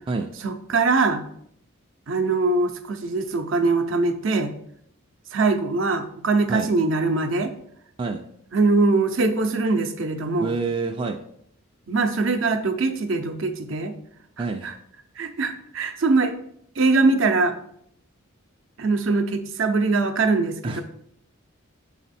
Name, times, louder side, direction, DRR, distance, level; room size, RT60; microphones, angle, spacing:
voice 1, 0.4-1.2 2.1-4.5 5.3-7.5 8.5-10.5 11.9-13.9 14.6-14.7 15.2-16.3 16.8-17.6 18.8-20.8, right 3 dB, 60° right, 8 dB, 0.6 m, -22 dB
voice 2, 10.4-11.2 14.4-14.7 20.6-20.8, right 4 dB, 25° right, 3 dB, 0.3 m, -27 dB
6.0 x 4.2 x 4.1 m, 0.69 s
head